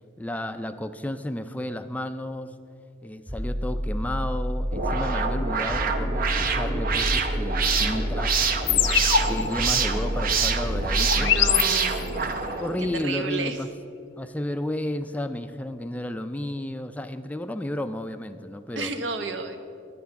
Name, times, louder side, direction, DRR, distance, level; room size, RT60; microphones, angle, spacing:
voice 1, 0.2-2.5 3.0-8.3 8.6-8.9 9.2-11.3 12.6-13.7 14.2-18.9, left 1 dB, 10° left, 10 dB, 0.3 m, -32 dB
sound 1, 3.3-12.4, equal, 30° right, 1.8 m, -29 dB
sound 2, 4.7-12.9, right 5 dB, 50° right, 0.8 m, -27 dB
sound 3, 8.7-12.3, left 9 dB, 75° left, 0.5 m, -26 dB
voice 2, 11.1-12.3 13.0-13.6 18.8-19.6, right 4 dB, 75° right, 7 dB, 1.0 m, -31 dB
11.0 x 9.3 x 5.7 m, 2.4 s
head